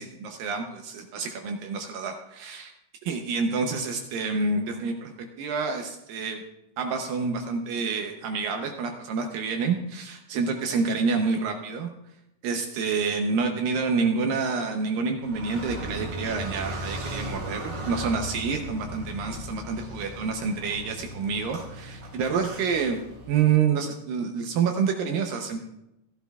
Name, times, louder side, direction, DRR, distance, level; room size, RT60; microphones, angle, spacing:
voice 1, 0.0-2.7 3.0-6.4 6.8-11.9 12.4-23.0 23.3-25.6, right 5 dB, 75° right, 4 dB, 2.2 m, -28 dB
Car, 15.2-23.5, right 1 dB, 50° right, 2.7 m, -37 dB
15.0 x 12.5 x 2.3 m, 0.88 s
omnidirectional pair, 4.6 m